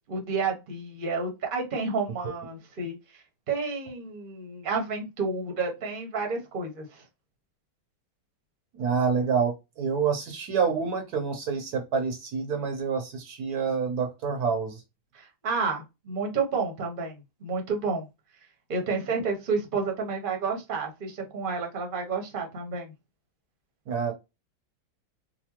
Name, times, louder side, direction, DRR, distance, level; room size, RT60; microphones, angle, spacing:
voice 1, 0.1-3.0 3.5-7.0 15.1-18.1 18.7-22.9, right 4 dB, 35° right, 0.9 m, -30 dB
voice 2, 8.7-14.8 23.9-24.1, right 5 dB, 65° right, 1.2 m, -27 dB
4.1 x 2.2 x 2.9 m
omnidirectional pair, 1.8 m